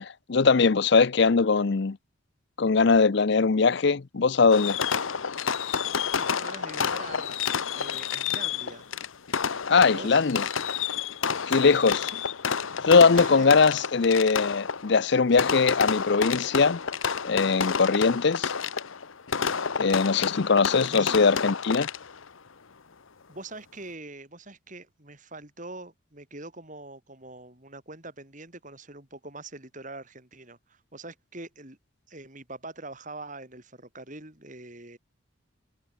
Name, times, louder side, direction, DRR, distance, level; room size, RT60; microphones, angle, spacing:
voice 1, 0.0-2.0 2.6-4.8 9.7-10.4 11.5-12.1 12.9-16.8 17.2-18.5 19.8-21.9, left 4 dB, 55° left, 0.6 m, -21 dB
Fireworks, 4.5-22.3, left 6 dB, 75° left, 0.9 m, -30 dB
voice 2, 6.1-7.4 7.7-8.9 9.8-10.3 11.5-11.8 12.2-12.3 13.1-13.6 20.7-21.2 23.3-31.8 32.1-35.0, right 2 dB, 35° right, 4.1 m, -43 dB
head